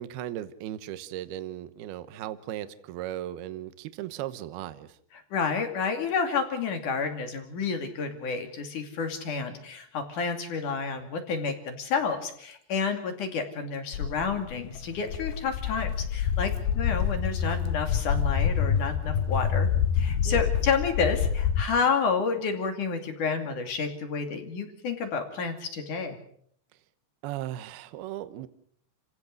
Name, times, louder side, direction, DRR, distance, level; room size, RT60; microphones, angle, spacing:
voice 1, 0.0-5.0 20.3-20.4 27.2-28.5, right 12 dB, 75° right, 13 dB, 2.9 m, -37 dB
voice 2, 5.3-19.7 19.9-26.2, left 5 dB, 50° left, 6 dB, 3.8 m, -30 dB
Walk footsteps, 13.9-21.6, left 8 dB, 75° left, 3.4 m, -27 dB
30.0 x 16.5 x 6.6 m, 0.63 s
omnidirectional pair, 4.9 m